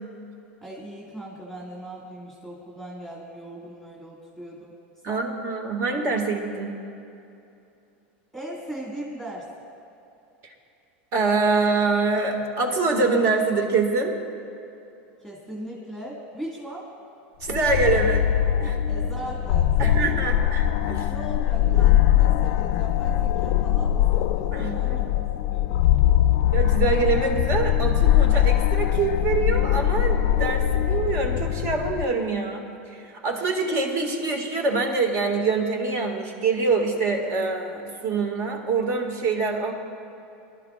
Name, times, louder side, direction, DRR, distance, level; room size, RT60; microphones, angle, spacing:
voice 1, 0.6-4.8 5.1-5.3 8.3-9.5 15.2-16.9 18.9-20.3 21.1-25.2 25.5-25.8, right 1 dB, 10° right, -5 dB, 1.9 m, -38 dB
voice 2, 5.0-6.8 10.4-10.5 11.1-14.1 17.4-18.2 18.6-18.8 19.8-21.1 24.5-25.0 26.5-39.7, right 4 dB, 50° right, 3 dB, 1.9 m, -25 dB
sound 1, 17.5-32.0, left 11 dB, 70° left, 0.5 m, -21 dB
22.0 x 12.0 x 2.4 m, 2.7 s
supercardioid pair, 130°, 7 cm